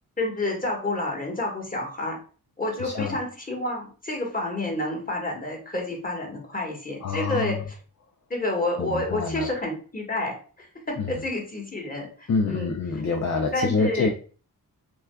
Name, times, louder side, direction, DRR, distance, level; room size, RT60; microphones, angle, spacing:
voice 1, 0.2-2.2 2.6-7.6 8.3-12.7 13.5-14.1, left 2 dB, 20° left, 0 dB, 1.4 m, -29 dB
voice 2, 2.8-3.2 7.0-7.6 8.8-9.5 11.0-11.1 12.3-14.1, left 4 dB, 50° left, 2 dB, 0.6 m, -26 dB
6.0 x 2.3 x 2.3 m, 0.39 s
cardioid pair, 75°, 37 cm